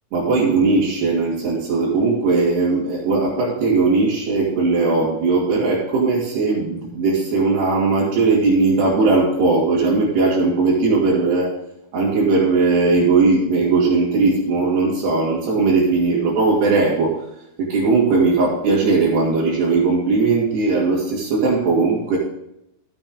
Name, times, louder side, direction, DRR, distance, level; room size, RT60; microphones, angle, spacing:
voice 1, 0.1-11.5 11.9-17.2 17.6-22.2, right 3 dB, 75° right, -6 dB, 4.8 m, -18 dB
14.0 x 8.7 x 3.8 m, 0.83 s
omnidirectional pair, 4.7 m